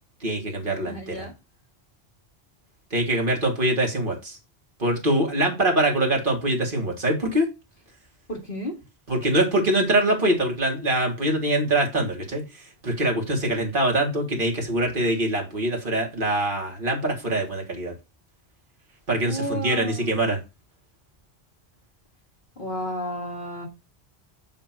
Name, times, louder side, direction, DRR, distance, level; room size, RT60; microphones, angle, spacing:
voice 1, 0.2-1.3 2.9-4.4 4.8-7.5 9.1-17.9 19.1-20.4, right 1 dB, 55° right, 1 dB, 2.0 m, -24 dB
voice 2, 0.8-1.3 8.3-8.7 19.3-20.1 22.6-23.7, left 1 dB, 55° left, 0 dB, 2.1 m, -32 dB
7.5 x 3.0 x 5.8 m, 0.26 s
omnidirectional pair, 1.1 m